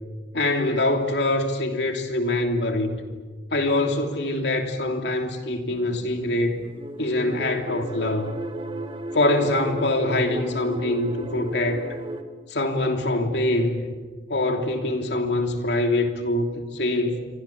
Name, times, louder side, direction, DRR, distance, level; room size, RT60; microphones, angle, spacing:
voice 1, 0.3-2.9 3.5-6.7 7.0-8.4 9.1-11.9 12.5-13.9 14.3-17.2, left 2 dB, 65° left, 3.1 m, -24 dB
sound 1, 5.7-12.2, right 2 dB, 30° right, 1.8 m, -35 dB
29.0 x 25.0 x 7.3 m
head